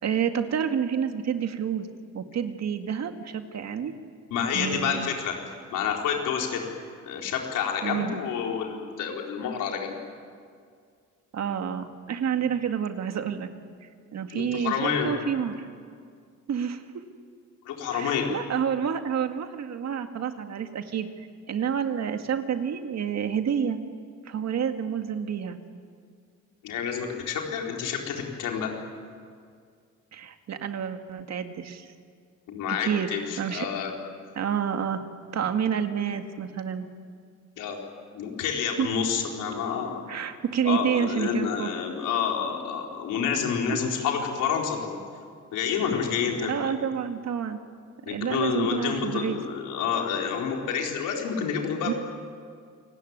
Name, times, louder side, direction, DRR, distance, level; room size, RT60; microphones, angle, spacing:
voice 1, 0.0-1.9 2.1-3.9 4.5-5.1 7.8-8.2 11.3-13.5 13.8-15.7 16.5-16.8 17.9-21.1 21.5-23.8 24.3-25.6 30.1-31.9 32.7-33.1 33.4-33.7 34.4-35.0 35.3-36.9 38.8-38.9 40.1-41.7 46.5-47.6 48.1-49.4 51.9-52.0, right 8 dB, 60° right, 6 dB, 2.1 m, -29 dB
voice 2, 4.3-5.3 5.7-6.7 7.0-10.0 14.3-15.1 17.6-18.3 26.6-28.7 32.5-33.9 37.6-37.8 38.1-40.0 40.6-45.0 45.5-46.7 48.1-51.9, left 7 dB, 90° left, 1 dB, 4.3 m, -28 dB
28.0 x 19.0 x 9.7 m, 2.2 s
cardioid pair, 90°, 30 cm